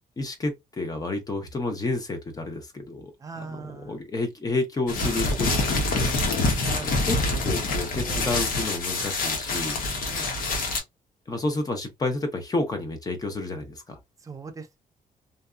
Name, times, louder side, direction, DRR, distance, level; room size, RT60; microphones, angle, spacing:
voice 1, 0.2-6.1 6.8-9.8 11.3-14.0, left 2 dB, 25° left, 0.8 m, -30 dB
voice 2, 3.2-4.0 6.5-7.6 8.1-8.3 10.1-10.4 14.2-14.8, right 4 dB, 25° right, 0.6 m, -40 dB
sound 1, 4.9-10.8, left 2 dB, 85° left, 0.9 m, -26 dB
2.7 x 2.2 x 2.3 m
cardioid pair, 130°, 14 cm